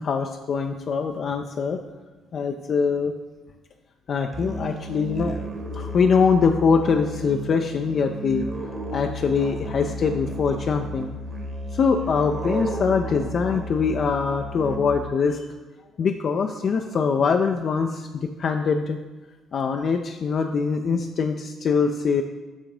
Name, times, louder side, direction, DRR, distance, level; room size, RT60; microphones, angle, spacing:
voice 1, 0.0-1.8 2.3-3.1 4.1-5.3 5.7-8.5 8.9-11.1 11.7-15.4 16.0-19.0 19.5-22.2, left 5 dB, 45° left, 4 dB, 0.4 m, -23 dB
Musical instrument, 4.3-15.1, equal, 35° right, 1.3 m, -33 dB
7.3 x 3.7 x 5.2 m, 1.2 s
figure-of-eight pair, 45°, 0 cm